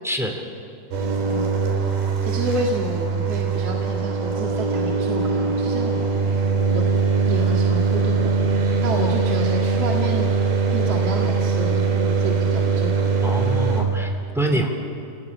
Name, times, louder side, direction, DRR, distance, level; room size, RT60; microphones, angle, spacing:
voice 1, 0.0-0.4 13.2-14.7, right 1 dB, ahead, 2 dB, 2.6 m, -25 dB
sound 1, 0.9-13.8, right 4 dB, 70° right, 5.9 m, -21 dB
voice 2, 2.2-6.3 6.7-6.8 7.3-10.3 10.7-13.1 13.6-13.7, right 2 dB, 45° right, -1 dB, 2.8 m, -30 dB
29.0 x 18.0 x 10.0 m, 2.5 s
omnidirectional pair, 4.5 m